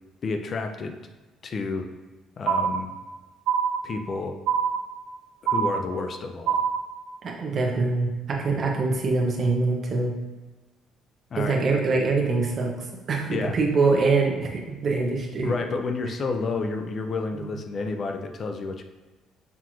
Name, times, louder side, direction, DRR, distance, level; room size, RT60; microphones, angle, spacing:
voice 1, 0.2-1.0 1.4-1.9 2.4-2.9 3.8-4.4 5.4-6.6 11.3-11.7 13.3-13.6 15.4-18.8, left 3 dB, 35° left, 5 dB, 0.3 m, -30 dB
sound 1, 2.5-3.1 3.5-4.1 4.5-5.1 5.5-6.1 6.5-7.1, right 7 dB, 90° right, 0.4 m, -25 dB
voice 2, 7.2-10.1 11.4-12.7 13.1-15.5 17.4-17.5, right 3 dB, 35° right, 0 dB, 0.6 m, -24 dB
5.7 x 2.4 x 3.0 m, 1.2 s
cardioid pair, 155°, 0 cm